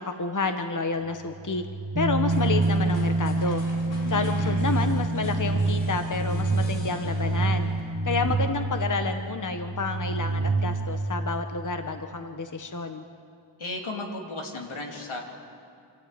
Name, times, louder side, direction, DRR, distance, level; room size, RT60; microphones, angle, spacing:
voice 1, 0.0-1.6 2.0-3.6 4.1-7.7 8.0-13.0, left 4 dB, 40° left, 7 dB, 1.2 m, -29 dB
sound 1, 1.1-11.8, right 2 dB, 50° right, 1.8 m, -29 dB
Bass guitar, 2.0-8.2, right 2 dB, 30° right, 1.1 m, -29 dB
sound 2, 2.3-8.0, left 1 dB, 70° left, 3.0 m, -44 dB
voice 2, 3.9-4.7 13.6-15.2, left 2 dB, 90° left, 1 dB, 2.8 m, -35 dB
27.5 x 12.5 x 8.9 m, 2.4 s
wide cardioid pair, 75°, 47 cm